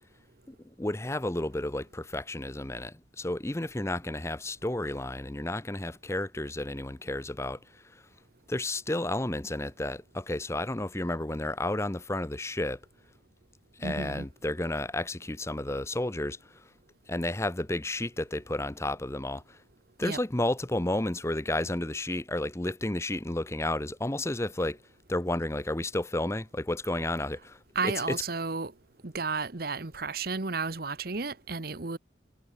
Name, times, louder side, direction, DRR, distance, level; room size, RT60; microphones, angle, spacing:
voice 1, 0.5-8.0 8.5-12.8 13.8-16.6 17.1-19.6 20.0-24.8 25.1-28.2, left 1 dB, 15° left, 0.8 m, -32 dB
voice 2, 13.8-14.3 20.0-20.2 27.7-28.7 29.0-32.0, right 4 dB, 55° right, 1.1 m, -32 dB
head